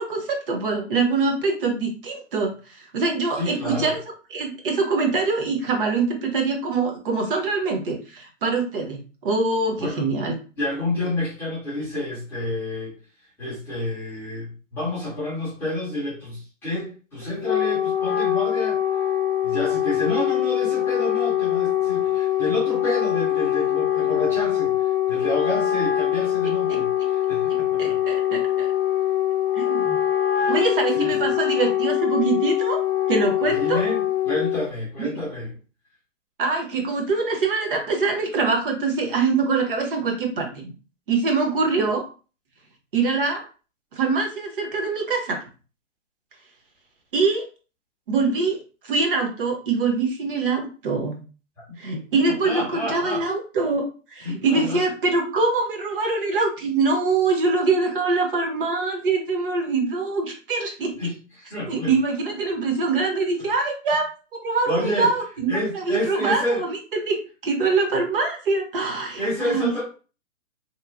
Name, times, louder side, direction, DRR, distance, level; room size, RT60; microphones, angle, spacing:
voice 1, 0.0-4.0 4.3-10.3 26.7-26.8 27.8-28.7 29.5-30.0 30.5-32.8 33.1-33.8 35.0-35.1 36.4-40.7 41.1-42.0 42.9-43.4 43.9-45.4 47.1-47.5 48.1-48.6 48.8-51.2 51.8-60.9 61.7-64.1 64.4-67.2 67.4-69.7, right 4 dB, 45° right, 2 dB, 0.8 m, -24 dB
voice 2, 3.4-3.9 9.8-10.1 10.6-12.9 13.4-18.8 19.4-28.0 30.4-30.7 30.9-31.1 33.5-35.5 52.3-53.2 54.2-54.8 61.0-61.9 64.7-65.1 65.5-66.6 69.2-69.8, left 1 dB, 5° left, -12 dB, 0.5 m, -29 dB
Wind instrument woodwind instrument, 17.2-34.7, left 11 dB, 45° left, 0.7 m, -23 dB
2.9 x 2.0 x 2.4 m, 0.35 s
hypercardioid pair, 145°, 39 cm